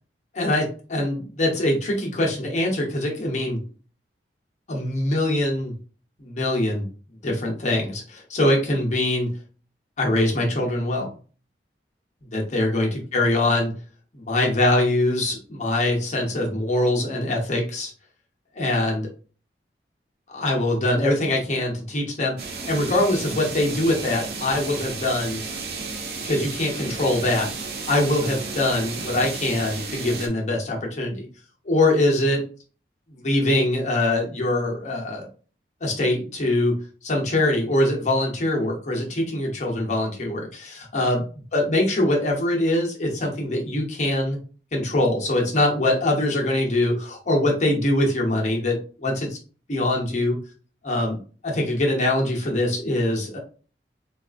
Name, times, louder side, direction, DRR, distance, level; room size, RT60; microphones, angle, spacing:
voice 1, 0.3-3.6 4.7-5.7 6.2-6.9 7.2-9.3 10.0-11.1 12.3-13.7 14.1-17.9 18.6-19.1 20.3-25.4 26.2-27.5 27.9-31.3 31.7-32.4 33.1-35.3 35.8-36.8 37.0-41.2 41.5-44.4 44.7-49.4 49.7-50.4 50.8-51.2 51.4-53.4, left 1 dB, 40° left, -1 dB, 0.7 m, -23 dB
sound 1, 22.4-30.3, right 4 dB, 60° right, 0.6 m, -33 dB
4.0 x 2.4 x 2.4 m, 0.38 s
head